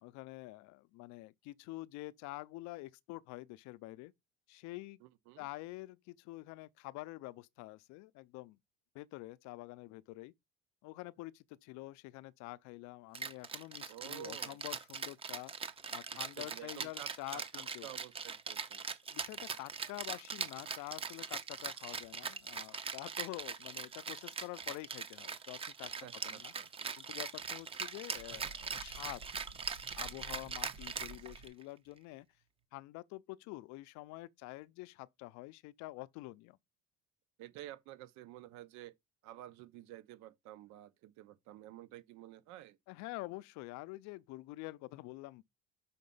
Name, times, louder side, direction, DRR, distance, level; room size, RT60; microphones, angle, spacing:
voice 1, 0.0-4.1 4.5-5.0 5.4-8.6 8.9-10.3 10.8-15.5 15.9-17.9 19.1-25.9 26.2-26.5 27.0-29.2 29.9-32.3 32.7-36.6 42.9-45.4, left 20 dB, 65° left, 0.5 m, -47 dB
voice 2, 5.0-5.5 13.9-14.6 16.1-18.8 26.0-26.9 37.4-38.9 39.2-42.8, right 14 dB, 65° right, 0.8 m, -51 dB
Rattle (instrument), 13.1-31.6, right 6 dB, 20° right, 0.5 m, -41 dB
sound 1, 26.4-31.5, right 3 dB, 80° right, 1.5 m, -55 dB
5.8 x 4.2 x 5.4 m
cardioid pair, 160°, 31 cm